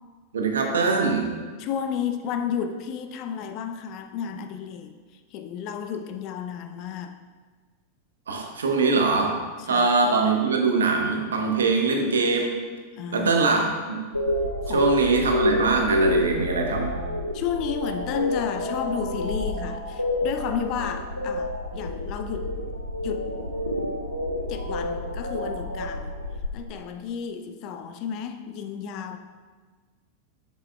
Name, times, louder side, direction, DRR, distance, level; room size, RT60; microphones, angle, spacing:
voice 1, 0.3-1.3 8.3-9.4 9.7-12.6 13.1-14.1 14.7-17.0, right 4 dB, 65° right, 3 dB, 0.9 m, -22 dB
voice 2, 1.6-4.9 5.3-7.2 9.6-10.2 13.0-13.3 13.6-13.8 14.6-14.9 17.3-22.6 23.0-23.4 24.5-26.1 26.5-29.2, left 7 dB, 40° left, 7 dB, 0.5 m, -32 dB
sound 1, 14.1-26.5, left 1 dB, 90° left, 0.5 m, -28 dB
7.4 x 7.3 x 2.3 m, 1.4 s
figure-of-eight pair, 90°, 0 cm